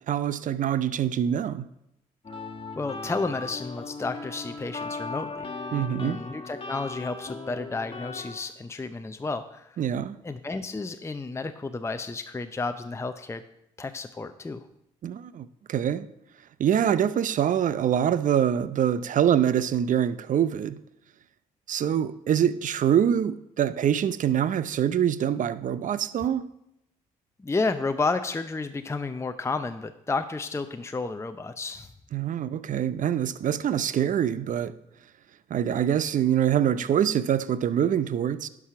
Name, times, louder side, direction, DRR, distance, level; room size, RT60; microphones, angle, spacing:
voice 1, 0.1-1.7 5.7-6.2 9.8-10.2 15.0-16.1 16.6-20.8 21.7-26.5 32.1-34.8 35.5-38.5, right 9 dB, 50° right, 0.6 m, -25 dB
sound 1, 2.2-8.4, left 3 dB, 30° left, 1.5 m, -37 dB
voice 2, 2.7-5.5 6.0-9.8 10.2-13.4 13.8-14.6 27.4-31.9, left 3 dB, 15° left, 0.6 m, -31 dB
11.0 x 4.8 x 5.9 m
hypercardioid pair, 50°, 17 cm